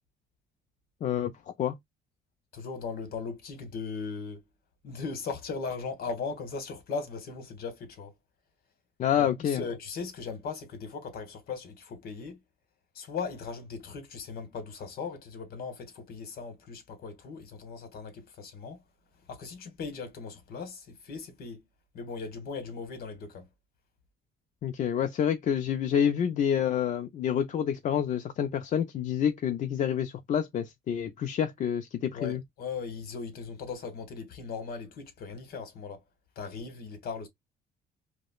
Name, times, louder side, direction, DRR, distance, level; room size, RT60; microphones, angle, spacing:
voice 1, 1.0-1.8 9.0-9.6 24.6-32.4, left 9 dB, 50° left, 0.5 m, -28 dB
voice 2, 2.5-4.4 4.8-8.1 9.2-12.4 12.9-18.8 19.3-21.6 21.9-23.5 32.1-36.0 36.4-37.3, left 5 dB, 65° left, 1.3 m, -38 dB
4.8 x 2.1 x 2.2 m
cardioid pair, 110°, 17 cm